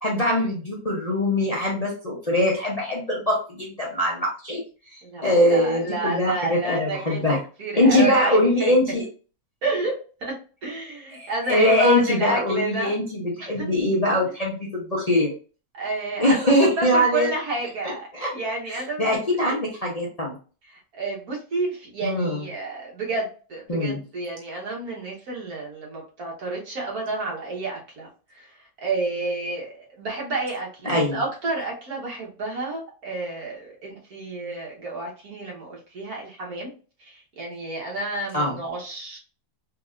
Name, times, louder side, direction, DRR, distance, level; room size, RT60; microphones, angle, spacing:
voice 1, 0.0-4.6 4.9-7.4 7.8-9.0 11.1-15.3 16.2-17.3 18.1-18.3 18.7-20.4 22.0-22.4 23.7-24.0 30.8-31.2 38.3-38.6, left 1 dB, 55° left, -4 dB, 0.4 m, -22 dB
voice 2, 5.0-8.7 9.6-10.3 10.6-12.9 13.4-13.7 15.7-18.1 18.3-19.5 20.7-28.1 28.3-36.7 37.0-39.2, right 2 dB, 60° right, -2 dB, 1.6 m, -30 dB
3.8 x 2.8 x 2.4 m, 0.37 s
omnidirectional pair, 1.8 m